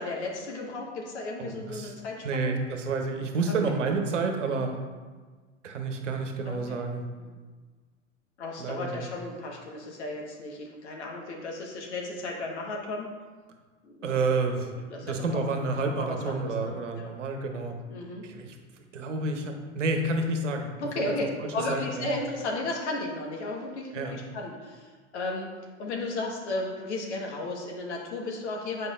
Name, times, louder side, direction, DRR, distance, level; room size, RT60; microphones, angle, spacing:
voice 1, 0.0-2.5 3.5-3.7 4.5-4.7 6.4-6.8 7.2-7.3 8.4-13.1 13.8-14.2 14.9-15.5 15.8-17.1 17.9-18.2 20.8-21.2 21.5-25.5 25.8-28.9, left 2 dB, 70° left, -1 dB, 1.4 m, -34 dB
voice 2, 1.4-1.9 2.2-4.7 5.6-7.0 8.6-9.0 14.0-14.7 15.0-17.7 18.2-18.6 18.9-21.1 21.4-22.1 23.9-24.2, right 3 dB, 80° right, 4 dB, 1.0 m, -29 dB
8.1 x 4.8 x 2.5 m, 1.4 s
hypercardioid pair, 90°, 36 cm